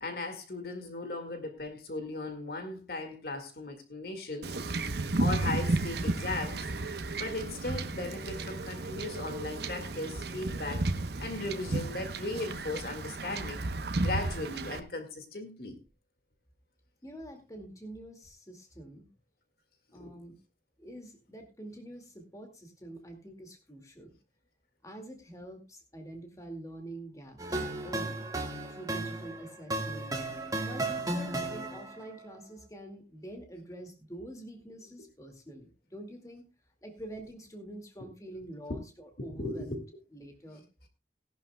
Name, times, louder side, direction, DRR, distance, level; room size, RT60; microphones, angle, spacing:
voice 1, 0.0-4.8 5.2-6.7 7.1-10.9 11.2-13.6 14.0-15.8 20.0-20.1 39.2-39.8, left 2 dB, 55° left, 7 dB, 2.0 m, -37 dB
Wind / Ocean / Boat Water vehicle, 4.4-14.8, right 2 dB, 65° right, 0.9 m, -33 dB
voice 2, 17.0-19.1 19.9-20.4 20.8-24.2 24.8-28.2 28.7-30.2 30.7-36.5 36.8-39.8 40.1-40.6, right 1 dB, 20° left, 4 dB, 2.1 m, -46 dB
sound 1, 27.4-32.1, right 2 dB, 20° right, 1.7 m, -34 dB
18.0 x 11.5 x 2.3 m, 0.28 s
head